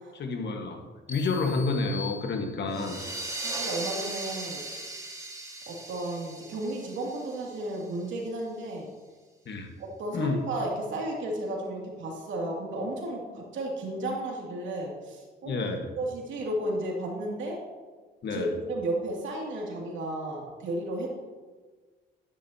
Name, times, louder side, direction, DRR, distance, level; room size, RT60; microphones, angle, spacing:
voice 1, 0.1-3.0 9.4-9.7 10.1-10.4 15.4-15.9 18.2-18.5, left 3 dB, 60° left, 4 dB, 1.5 m, -30 dB
sound 1, 1.1-3.0, left 7 dB, 35° left, 1.7 m, -42 dB
sound 2, 2.7-8.0, right 2 dB, 15° right, 1.7 m, -38 dB
voice 2, 3.4-4.6 5.7-8.9 9.8-15.6 16.0-17.6 18.3-21.2, right 1 dB, 75° right, -1 dB, 2.6 m, -33 dB
11.0 x 10.0 x 2.9 m, 1.4 s
cardioid pair, 90°, 20 cm